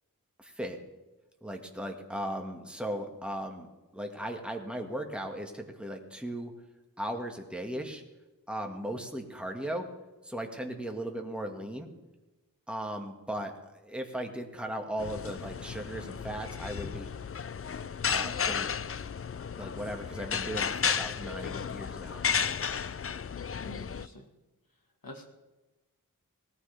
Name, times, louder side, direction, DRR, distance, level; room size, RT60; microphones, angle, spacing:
voice 1, 0.4-0.8 1.4-3.7 3.9-6.5 7.0-8.0 8.5-9.9 10.2-11.9 12.7-17.1 18.1-18.7 19.6-22.2, right 1 dB, 5° right, 2 dB, 1.9 m, -37 dB
sound 1, 15.0-24.1, left 6 dB, 40° left, 0.4 m, -33 dB
voice 2, 23.6-24.3 25.0-25.3, left 1 dB, 75° left, 2 dB, 1.9 m, -45 dB
19.5 x 14.0 x 3.5 m, 1.1 s
wide cardioid pair, 45°, 35 cm